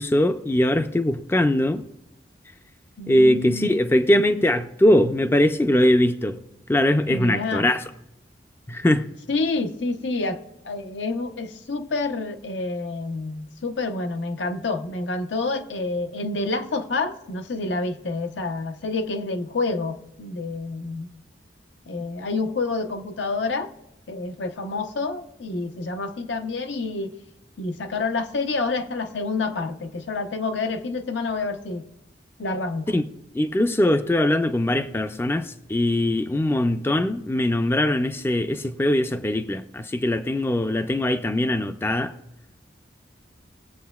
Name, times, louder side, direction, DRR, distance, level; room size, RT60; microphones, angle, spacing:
voice 1, 0.0-1.8 3.1-6.4 6.7-7.8 8.7-9.1 32.9-33.1 33.3-42.1, left 1 dB, 15° left, 0.4 m, -21 dB
voice 2, 3.0-3.7 7.1-7.7 9.3-10.4 10.6-21.1 21.9-23.7 24.1-27.1 27.6-31.8 32.4-32.9, left 3 dB, 80° left, 0.7 m, -28 dB
20.5 x 7.8 x 2.3 m
head